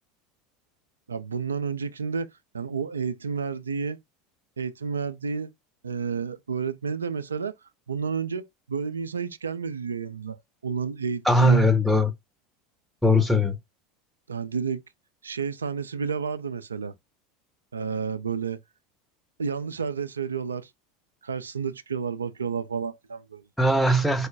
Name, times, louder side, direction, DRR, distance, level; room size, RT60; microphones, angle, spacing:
voice 1, 1.1-2.3 2.5-4.0 4.6-5.5 5.8-7.5 7.9-11.6 13.3-13.4 14.3-14.8 15.2-16.9 17.7-18.6 19.4-20.7 21.2-23.4, right 6 dB, 85° right, 0.4 m, -31 dB
voice 2, 11.2-12.1 13.0-13.6 23.6-24.3, left 1 dB, ahead, 1.1 m, -20 dB
4.8 x 2.1 x 4.7 m
hypercardioid pair, 80°, 0 cm